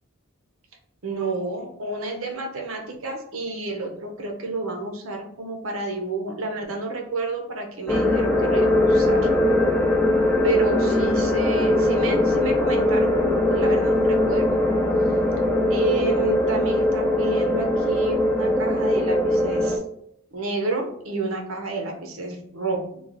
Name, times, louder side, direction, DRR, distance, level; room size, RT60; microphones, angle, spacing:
voice 1, 1.0-9.3 10.4-14.6 15.7-19.8 20.3-23.0, right 3 dB, 90° right, 2 dB, 0.7 m, -30 dB
sound 1, 7.9-19.8, left 1 dB, 10° left, 0.4 m, -21 dB
3.1 x 2.3 x 3.8 m, 0.68 s
head